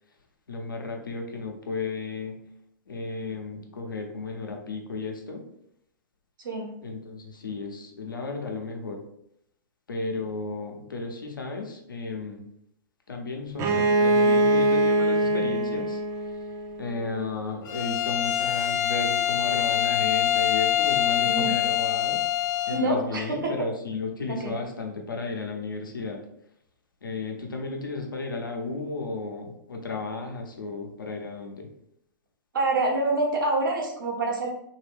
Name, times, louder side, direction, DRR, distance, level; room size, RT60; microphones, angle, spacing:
voice 1, 0.5-2.4 2.9-5.5 6.8-9.0 9.9-12.4 13.1-16.0 16.8-22.2 22.7-26.2 27.0-31.7, left 3 dB, 90° left, 2 dB, 0.7 m, -34 dB
voice 2, 6.4-6.7 21.2-21.6 22.7-23.5 24.3-24.5 32.5-34.5, right 2 dB, 75° right, 0 dB, 1.1 m, -26 dB
Bowed string instrument, 13.6-17.2, right 2 dB, 25° right, 0.4 m, -23 dB
Bowed string instrument 2, 17.7-22.9, left 11 dB, 65° left, 0.8 m, -25 dB
3.0 x 2.6 x 3.3 m, 0.75 s
hypercardioid pair, 120°, 11 cm